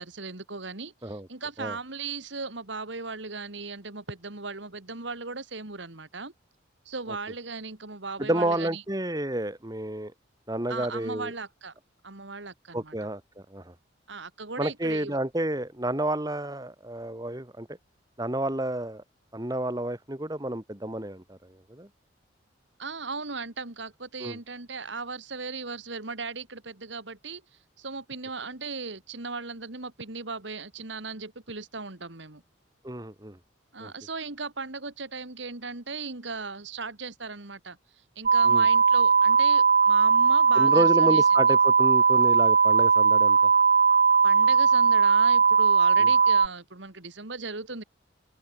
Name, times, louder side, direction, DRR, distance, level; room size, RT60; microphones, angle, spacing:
voice 1, 0.0-6.3 6.9-8.8 10.7-11.7 12.0-13.0 14.1-15.2 22.8-27.4 27.8-32.4 33.7-37.8 38.2-41.2 44.2-47.8, right 4 dB, 70° right, 2.4 m, -37 dB
voice 2, 8.2-10.1 10.5-11.3 12.7-13.7 14.6-17.7 18.2-19.0 19.3-21.4 21.7-21.9 24.2-24.4 32.8-33.4 33.8-33.9 38.4-38.7 40.6-43.4 46.0-46.1, right 1 dB, 20° right, 2.3 m, -30 dB
sound 1, 38.3-46.5, right 5 dB, 45° right, 1.0 m, -19 dB
head